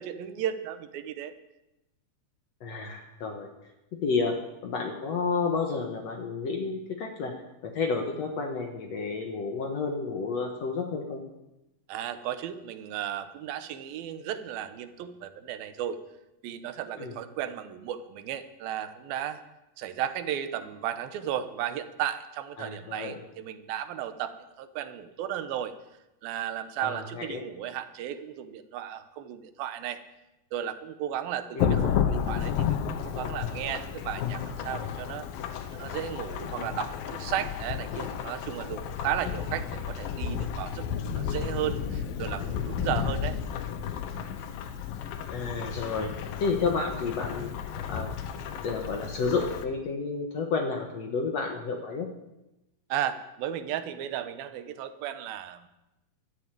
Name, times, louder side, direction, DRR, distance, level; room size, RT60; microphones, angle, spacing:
voice 1, 0.0-1.3 11.9-16.0 16.4-19.4 19.8-25.7 26.2-30.0 30.5-35.3 35.7-43.4 52.9-55.7, right 10 dB, 90° right, 10 dB, 2.9 m, -34 dB
voice 2, 2.6-3.5 4.0-4.3 4.6-7.3 7.6-11.2 17.0-17.1 22.6-23.1 26.8-27.4 31.6-31.9 45.3-46.1 46.4-47.5 47.9-48.1 48.6-52.1, left 4 dB, 55° left, 3 dB, 2.1 m, -31 dB
Thunderstorm / Rain, 31.6-49.6, left 8 dB, 90° left, 2.8 m, -32 dB
13.0 x 9.4 x 9.0 m, 0.94 s
omnidirectional pair, 4.1 m